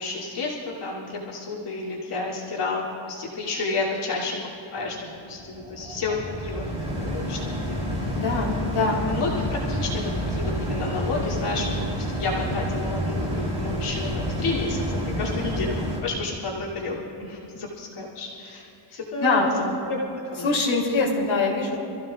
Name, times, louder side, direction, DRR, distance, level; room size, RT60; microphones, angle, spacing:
voice 1, 0.0-4.4 4.7-5.0 5.2-6.6 6.9-8.1 9.1-15.7 16.0-18.7 18.9-20.0 20.3-20.5, left 3 dB, 85° left, -5 dB, 2.9 m, -31 dB
sound 1, 4.8-16.0, equal, 15° right, 3.3 m, -29 dB
voice 2, 8.1-9.0 19.2-19.8 20.4-21.8, left 3 dB, 65° left, -3 dB, 3.1 m, -23 dB
27.5 x 15.0 x 2.4 m, 2.9 s
wide cardioid pair, 175°, 50 cm